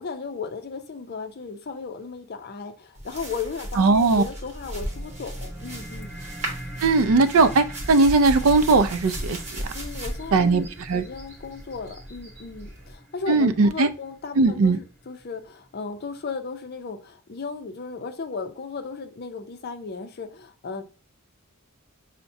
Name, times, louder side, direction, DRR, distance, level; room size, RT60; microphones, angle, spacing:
voice 1, 0.0-6.1 9.7-10.7 10.9-20.8, left 4 dB, 50° left, 0.5 m, -35 dB
sound 1, 2.9-12.9, right 1 dB, 30° right, 1.1 m, -36 dB
voice 2, 3.8-4.2 6.8-9.6 10.3-11.0 13.3-13.9 14.4-14.8, right 3 dB, 75° right, 0.4 m, -19 dB
sound 2, 4.4-15.4, right 1 dB, 5° left, 0.8 m, -43 dB
5.6 x 2.1 x 2.6 m
head